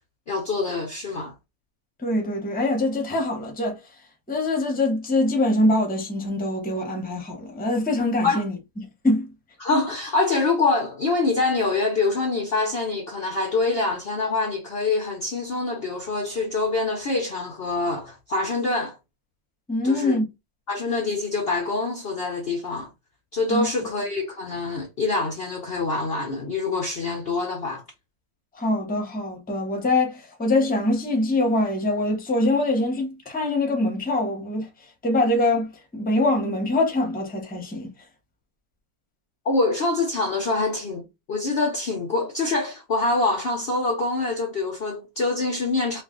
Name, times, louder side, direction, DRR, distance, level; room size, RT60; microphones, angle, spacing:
voice 1, 0.3-1.3 8.2-8.4 9.6-19.0 19.8-20.2 20.7-22.9 23.3-27.8 39.5-46.0, left 3 dB, 80° left, 0.5 m, -25 dB
voice 2, 2.0-3.8 4.3-9.3 19.7-20.2 23.5-23.7 28.5-34.7 35.0-37.9, left 2 dB, 10° left, 0.5 m, -24 dB
3.2 x 2.4 x 3.6 m
omnidirectional pair, 1.9 m